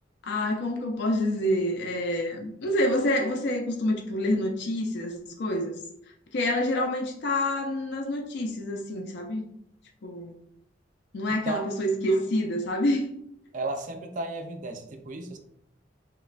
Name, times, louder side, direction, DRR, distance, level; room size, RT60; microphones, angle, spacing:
voice 1, 0.2-5.7 6.3-9.5 10.0-10.3 11.1-13.1, left 1 dB, 60° left, 2 dB, 0.4 m, -27 dB
voice 2, 13.5-15.4, right 2 dB, 45° right, 6 dB, 0.4 m, -34 dB
3.0 x 2.2 x 2.4 m, 0.73 s
head